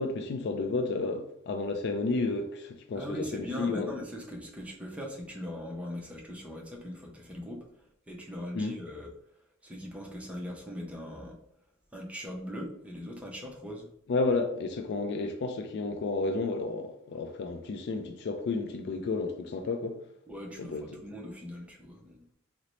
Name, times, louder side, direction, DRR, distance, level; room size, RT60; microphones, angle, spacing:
voice 1, 0.0-3.9 8.5-8.8 14.1-20.0 20.6-21.0, left 3 dB, 50° left, 0.3 m, -31 dB
voice 2, 3.0-7.6 8.1-9.1 9.6-11.4 11.9-13.9 20.3-22.3, equal, 5° right, 0.5 m, -40 dB
3.9 x 2.0 x 3.0 m
head